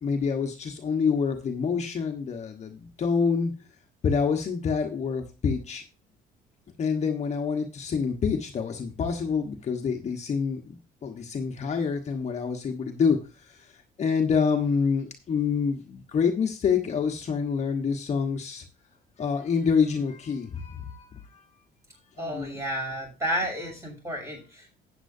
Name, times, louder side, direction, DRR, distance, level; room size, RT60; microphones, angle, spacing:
voice 1, 0.0-3.5 4.0-5.8 6.8-13.7 14.0-18.6 19.2-21.1 21.3-21.4 22.2-22.6, left 6 dB, 40° left, 2 dB, 1.3 m, -27 dB
voice 2, 22.2-24.7, equal, 15° right, 0 dB, 6.9 m, -31 dB
13.0 x 9.0 x 2.7 m, 0.30 s
cardioid pair, 110°, 17 cm